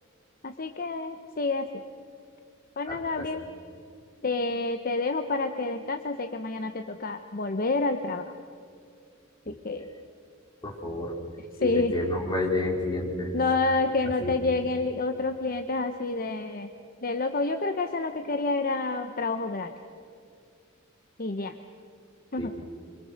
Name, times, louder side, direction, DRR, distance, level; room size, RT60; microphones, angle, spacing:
voice 1, 0.4-1.7 2.8-3.4 4.2-8.3 9.5-9.9 11.6-11.9 13.3-16.7 17.0-19.7 21.2-21.5 22.3-22.5, left 3 dB, 45° left, 7 dB, 1.0 m, -28 dB
voice 2, 2.9-3.2 9.4-9.5 10.6-11.1 11.6-13.4 14.2-14.3 22.4-22.6, left 2 dB, 20° left, -2 dB, 4.6 m, -30 dB
27.0 x 24.5 x 6.6 m, 2.4 s
head